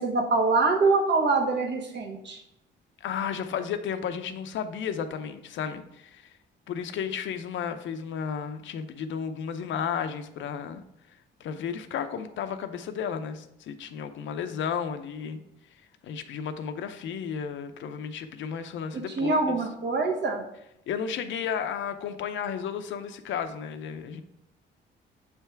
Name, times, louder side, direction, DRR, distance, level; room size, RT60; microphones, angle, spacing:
voice 1, 0.0-2.4 18.9-20.4, right 3 dB, 60° right, 2 dB, 1.3 m, -24 dB
voice 2, 3.0-6.3 6.7-10.8 11.4-15.4 16.0-19.6 20.9-24.2, left 7 dB, 75° left, 9 dB, 0.6 m, -33 dB
7.3 x 3.4 x 4.5 m, 0.81 s
cardioid pair, 90°, 20 cm